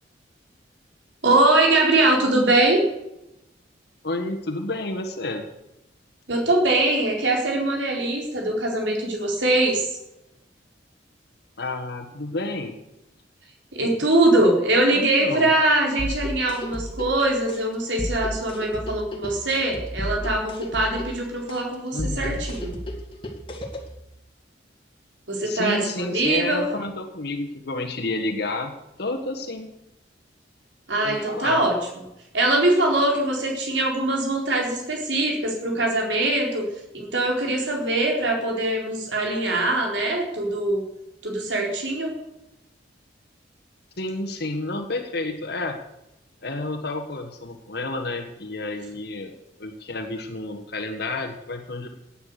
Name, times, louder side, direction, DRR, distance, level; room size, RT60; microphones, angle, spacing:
voice 1, 1.2-2.8 6.3-9.9 13.7-22.7 25.3-26.6 30.9-31.8 32.3-36.7 36.9-40.8 41.2-42.1, right 2 dB, 75° right, 0 dB, 4.2 m, -22 dB
voice 2, 4.0-5.4 11.6-12.8 14.9-15.5 21.9-22.4 25.4-29.7 31.0-31.6 44.0-45.8 46.4-51.9, left 2 dB, 60° left, 5 dB, 1.5 m, -30 dB
sound 1, 16.0-24.0, left 1 dB, 30° left, 2.2 m, -33 dB
17.5 x 9.0 x 6.7 m, 0.88 s
head